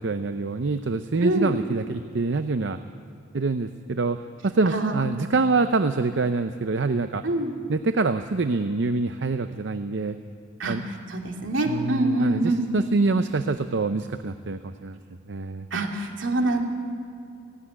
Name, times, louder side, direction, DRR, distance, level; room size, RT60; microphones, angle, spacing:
voice 1, 0.0-2.8 3.3-4.2 4.4-7.2 7.7-10.2 10.7-10.8 11.7-15.0 15.3-15.7, right 3 dB, 65° right, 9 dB, 0.6 m, -25 dB
voice 2, 1.2-1.6 4.7-5.0 7.2-7.5 10.6-10.8 11.1-12.7 15.7-16.6, right 2 dB, 80° right, 2 dB, 2.6 m, -25 dB
16.5 x 15.5 x 10.0 m, 2.4 s
head